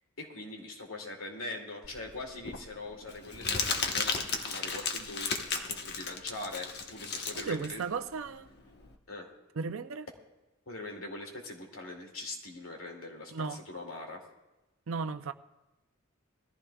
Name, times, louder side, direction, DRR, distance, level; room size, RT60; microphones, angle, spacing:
voice 1, 0.2-7.9 9.1-9.3 10.7-14.2, left 2 dB, 85° left, 2.5 m, -42 dB
Crumpling crinkling, 1.8-8.9, left 4 dB, 55° left, 1.1 m, -34 dB
voice 2, 7.3-8.5 9.6-10.1 13.3-13.6 14.9-15.3, right 5 dB, 75° right, 0.5 m, -35 dB
21.5 x 14.5 x 2.3 m
head